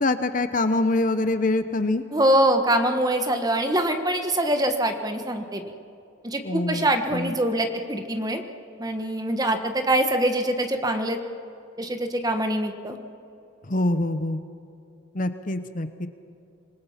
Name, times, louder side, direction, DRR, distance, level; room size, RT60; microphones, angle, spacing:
voice 1, 0.0-2.0 6.4-7.3 13.7-14.4 15.1-16.1, left 2 dB, 40° left, 10 dB, 0.8 m, -25 dB
voice 2, 2.1-5.6 6.2-8.4 8.8-11.2 11.8-13.0, right 1 dB, 20° right, 6 dB, 1.3 m, -24 dB
26.5 x 20.5 x 5.8 m, 2.7 s
head